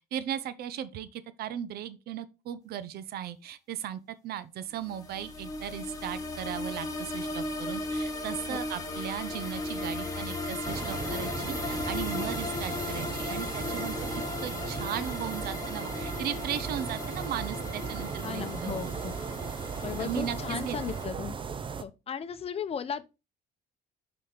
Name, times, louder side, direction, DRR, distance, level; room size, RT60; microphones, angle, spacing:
voice 1, 0.1-18.9 20.0-20.8, right 10 dB, 65° right, 0.7 m, -37 dB
sound 1, 4.8-21.1, left 2 dB, 20° left, 1.8 m, -36 dB
sound 2, 10.6-21.8, right 6 dB, 30° right, 0.7 m, -37 dB
voice 2, 18.2-19.2 19.8-21.4 21.8-23.1, left 7 dB, 35° left, 0.8 m, -36 dB
5.5 x 4.2 x 4.9 m
cardioid pair, 110°, 17 cm